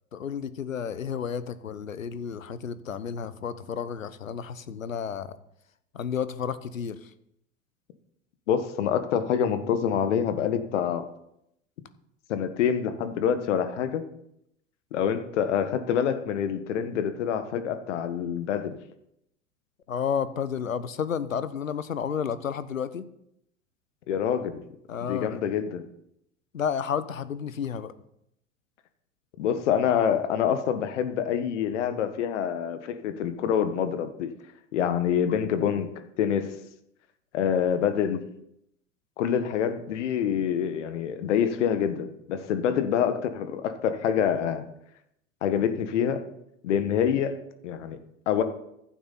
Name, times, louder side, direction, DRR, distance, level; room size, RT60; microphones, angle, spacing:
voice 1, 0.1-5.4 5.9-7.1 19.9-23.0 24.9-25.4 26.5-27.9, left 7 dB, 85° left, 16 dB, 1.0 m, -31 dB
voice 2, 8.5-11.1 12.3-14.0 14.9-18.8 24.1-24.6 25.1-25.8 29.4-34.3 34.7-35.9 36.2-36.5 37.3-38.3 39.2-44.7 45.4-46.2 46.6-48.0 48.2-48.4, left 8 dB, 60° left, 10 dB, 1.6 m, -26 dB
15.0 x 11.5 x 4.2 m, 0.78 s
figure-of-eight pair, 90°, 39 cm